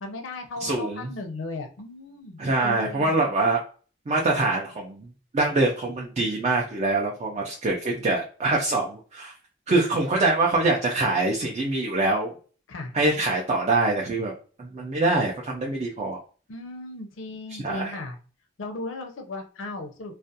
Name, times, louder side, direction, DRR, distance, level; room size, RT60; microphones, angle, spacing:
voice 1, 0.0-3.2 12.7-13.0 16.5-18.2 18.6-20.2, left 2 dB, 90° left, 4 dB, 0.6 m, -36 dB
voice 2, 0.6-1.1 2.4-3.6 4.1-5.1 5.3-9.3 9.7-12.3 12.9-14.3 14.6-16.2 17.5-18.0, right 2 dB, 35° right, -1 dB, 0.4 m, -24 dB
2.3 x 2.2 x 2.7 m, 0.39 s
head